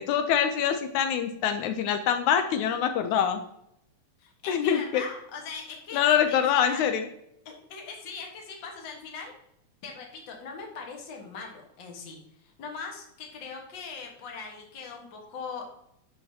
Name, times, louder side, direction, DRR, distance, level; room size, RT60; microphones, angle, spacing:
voice 1, 0.0-3.4 4.5-5.0 5.9-7.0, left 8 dB, 80° left, 7 dB, 2.0 m, -25 dB
voice 2, 4.2-6.9 7.5-9.3 9.8-12.2 12.6-15.6, left 5 dB, 45° left, 1 dB, 1.8 m, -40 dB
10.5 x 5.6 x 2.8 m, 0.76 s
omnidirectional pair, 3.4 m